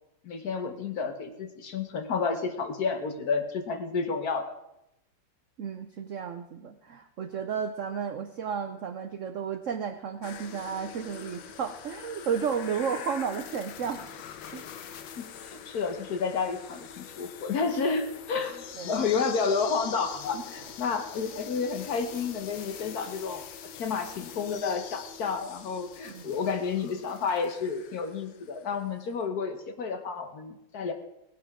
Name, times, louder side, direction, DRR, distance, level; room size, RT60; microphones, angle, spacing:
voice 1, 0.2-4.5 15.2-18.6 18.8-23.4 23.7-30.9, left 5 dB, 60° left, 7 dB, 1.5 m, -30 dB
voice 2, 5.6-14.0 14.5-14.6 18.8-19.0 20.3-20.4 26.0-26.3, right 7 dB, 70° right, 9 dB, 0.7 m, -33 dB
sound 1, 10.2-28.7 29.0-29.1, left 8 dB, 80° left, 1.5 m, -44 dB
18.0 x 10.5 x 3.6 m, 0.85 s
omnidirectional pair, 2.0 m